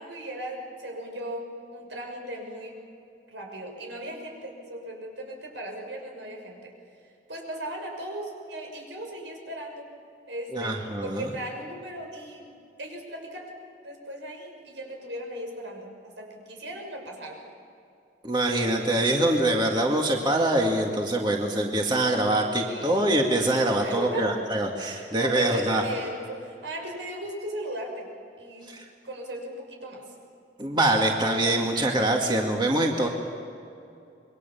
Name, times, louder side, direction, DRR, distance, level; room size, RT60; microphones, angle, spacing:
voice 1, 0.0-2.8 3.3-6.7 7.3-9.9 10.3-12.5 12.8-13.5 13.8-17.4 22.5-23.0 23.8-24.3 24.8-28.1 28.4-28.7 29.0-30.0 33.0-33.1, equal, 85° right, 1 dB, 6.4 m, -37 dB
voice 2, 10.5-11.3 18.2-25.8 28.7-28.8 30.6-33.1, right 1 dB, 25° right, 1 dB, 2.1 m, -24 dB
27.5 x 23.0 x 7.1 m, 2.5 s
head